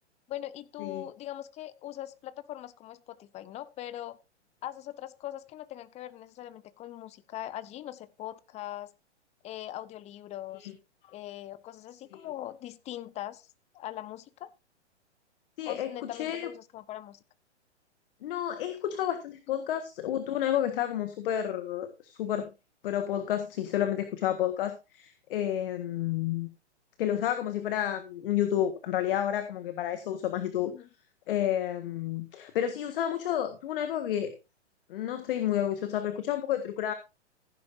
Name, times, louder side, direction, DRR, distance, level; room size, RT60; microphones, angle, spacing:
voice 1, 0.3-4.2 4.6-8.9 9.4-10.7 11.1-13.5 13.7-14.5 15.6-17.2 19.5-19.6 30.7-30.9, left 13 dB, 20° left, 16 dB, 0.8 m, -41 dB
voice 2, 15.6-16.5 18.2-22.5 22.8-26.5 27.0-30.7 31.3-34.3 34.9-36.9, left 11 dB, 50° left, 9 dB, 1.7 m, -30 dB
15.5 x 10.5 x 2.7 m, 0.27 s
figure-of-eight pair, 120°, 35 cm